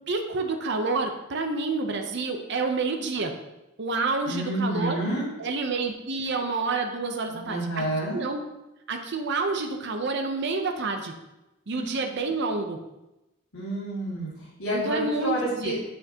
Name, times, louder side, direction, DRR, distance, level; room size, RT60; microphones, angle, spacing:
voice 1, 0.1-3.3 3.8-5.0 5.4-7.9 8.1-8.4 8.9-11.1 11.7-12.8 14.7-15.7, right 3 dB, 55° right, 4 dB, 0.7 m, -28 dB
voice 2, 4.3-5.3 7.3-8.2 11.7-11.9 13.5-15.8, right 1 dB, 75° left, -10 dB, 2.3 m, -29 dB
7.6 x 6.6 x 2.8 m, 0.96 s
head